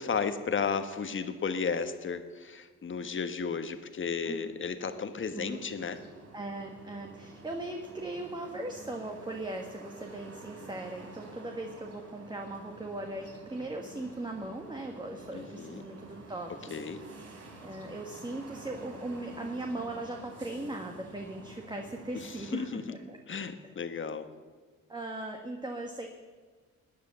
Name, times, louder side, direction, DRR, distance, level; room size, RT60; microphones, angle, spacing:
voice 1, 0.0-6.0 15.3-15.8 16.7-17.0 22.1-22.8 23.3-24.3, left 5 dB, 40° left, 8 dB, 1.4 m, -34 dB
sound 1, 5.1-22.6, right 2 dB, 55° right, 4.3 m, -49 dB
voice 2, 6.3-16.5 16.9-17.1 17.6-23.2 23.6-23.7 24.9-26.1, right 2 dB, 15° right, 2 dB, 1.6 m, -39 dB
18.5 x 10.0 x 6.9 m, 1.5 s
cardioid pair, 90°, 30 cm